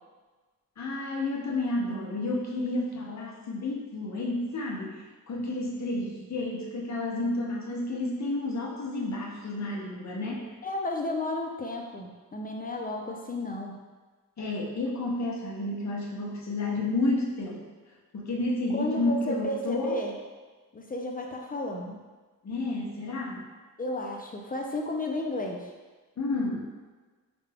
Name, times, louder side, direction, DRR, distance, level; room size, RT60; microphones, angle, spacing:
voice 1, 0.8-10.5 14.4-17.7 18.1-20.0 22.4-23.4 26.2-26.7, left 2 dB, 50° left, -3 dB, 0.8 m, -31 dB
voice 2, 10.6-13.8 18.7-20.2 20.7-22.0 23.8-25.7, left 2 dB, 25° left, 1 dB, 0.3 m, -33 dB
4.9 x 2.2 x 3.3 m, 1.3 s
wide cardioid pair, 145°, 35 cm